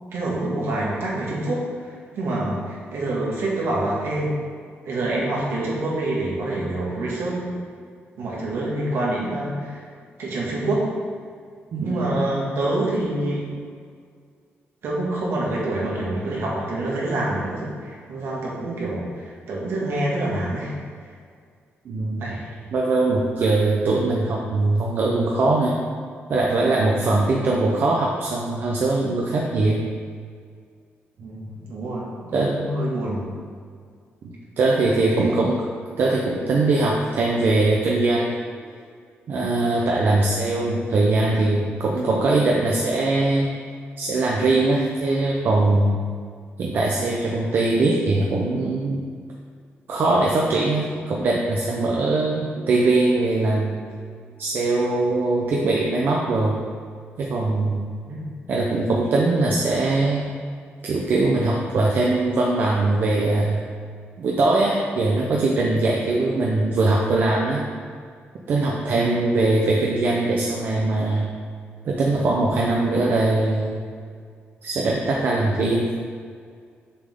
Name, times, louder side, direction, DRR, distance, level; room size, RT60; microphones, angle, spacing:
voice 1, 0.1-4.3 4.9-7.5 8.2-9.9 10.2-10.9 11.8-13.4 14.8-20.7 22.2-22.5 26.9-27.2 31.2-33.3 34.7-35.4 58.1-58.2 68.8-69.1, right 2 dB, 70° right, -4 dB, 2.1 m, -26 dB
voice 2, 11.7-12.2 18.6-18.7 21.8-22.2 22.7-25.8 26.3-29.8 32.3-32.5 34.2-35.6 36.0-38.3 39.3-43.5 44.0-46.0 46.6-49.1 49.9-53.8 54.4-56.6 57.2-57.9 58.5-60.3 60.8-63.7 64.2-67.6 68.5-71.3 71.8-73.8 74.6-75.9, right 2 dB, 50° right, -2 dB, 0.8 m, -21 dB
7.4 x 6.9 x 3.8 m, 2.1 s
wide cardioid pair, 170°, 4 cm